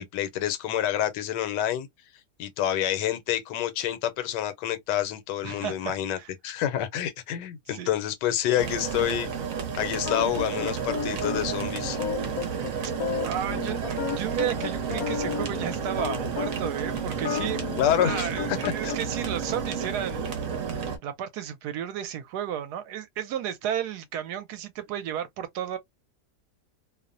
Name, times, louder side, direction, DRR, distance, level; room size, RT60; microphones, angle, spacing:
voice 1, 0.0-1.9 2.4-6.2 6.4-9.3 9.8-12.0 17.8-18.9, left 11 dB, 85° left, 1.2 m, -28 dB
voice 2, 5.4-6.3 7.7-7.9 13.2-17.6 18.0-20.5 21.0-25.8, right 10 dB, 75° right, 1.1 m, -33 dB
sound 1, 8.6-21.0, right 6 dB, 60° right, 1.0 m, -31 dB
sound 2, 10.0-16.7 17.1-19.0, left 7 dB, 70° left, 1.0 m, -33 dB
2.9 x 2.1 x 2.4 m
omnidirectional pair, 1.8 m